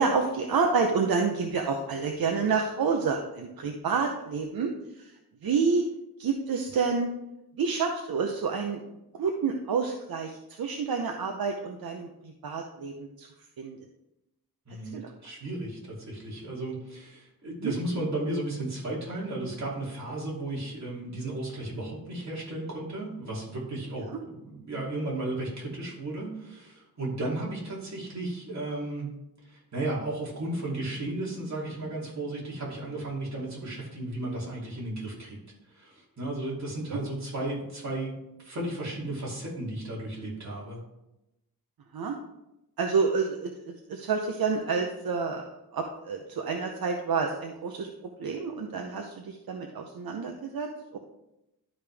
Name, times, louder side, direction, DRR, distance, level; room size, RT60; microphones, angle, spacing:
voice 1, 0.0-5.1 5.4-5.8 6.2-7.1 7.6-8.8 9.2-13.3 13.6-13.8 14.9-15.1 17.6-17.7 36.9-37.0 41.9-42.2 42.8-47.9 48.2-51.0, right 5 dB, 75° right, 3 dB, 0.8 m, -29 dB
voice 2, 14.7-29.1 29.4-35.4 35.7-38.1 38.4-40.8, right 2 dB, 50° right, -5 dB, 2.9 m, -34 dB
12.0 x 5.2 x 3.4 m, 0.91 s
wide cardioid pair, 175°, 36 cm